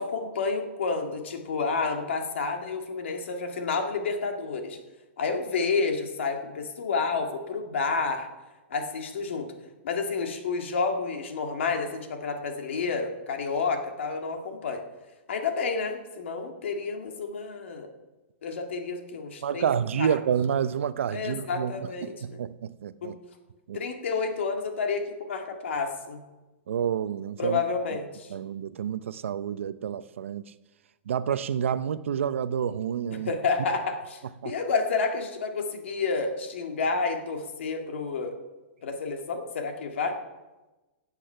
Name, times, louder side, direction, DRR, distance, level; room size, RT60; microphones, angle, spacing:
voice 1, 0.0-4.8 5.2-8.3 8.7-9.5 9.8-14.8 15.3-17.9 18.4-19.7 20.0-20.1 21.1-22.4 23.0-23.1 23.7-26.2 27.4-28.3 33.1-38.4 38.8-40.2, left 4 dB, 70° left, 2.0 m, -30 dB
voice 2, 19.4-23.2 23.7-23.8 26.7-27.6 28.3-30.4 31.1-33.3 34.4-34.5, right 8 dB, 80° right, 0.7 m, -29 dB
15.0 x 8.4 x 5.6 m
hypercardioid pair, 175°, 7 cm